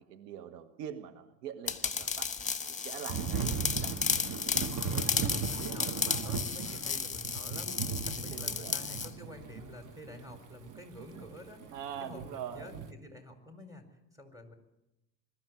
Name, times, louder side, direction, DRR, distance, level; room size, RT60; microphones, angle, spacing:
voice 1, 0.1-2.3 2.7-3.9 8.3-8.8 11.7-12.8, right 9 dB, 75° right, 9 dB, 1.5 m, -43 dB
sound 1, 1.7-9.1, left 5 dB, 15° left, 1.5 m, -34 dB
Thunder / Rain, 3.1-12.9, right 6 dB, 40° right, 1.4 m, -38 dB
voice 2, 4.8-12.7 13.0-14.6, left 1 dB, 5° right, 5 dB, 4.5 m, -49 dB
21.5 x 13.5 x 9.6 m, 0.95 s
hypercardioid pair, 65°, 48 cm